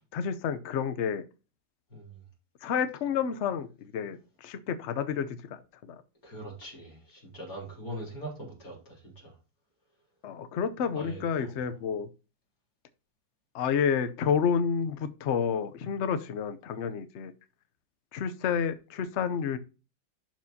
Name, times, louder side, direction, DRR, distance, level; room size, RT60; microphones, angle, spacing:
voice 1, 0.1-1.2 2.6-5.6 5.9-6.0 10.2-12.1 13.5-17.3 18.1-19.6, left 7 dB, 80° left, 0.6 m, -30 dB
voice 2, 6.2-9.3 11.0-11.5, right 1 dB, 45° left, 4.1 m, -42 dB
11.5 x 4.6 x 2.7 m
omnidirectional pair, 2.1 m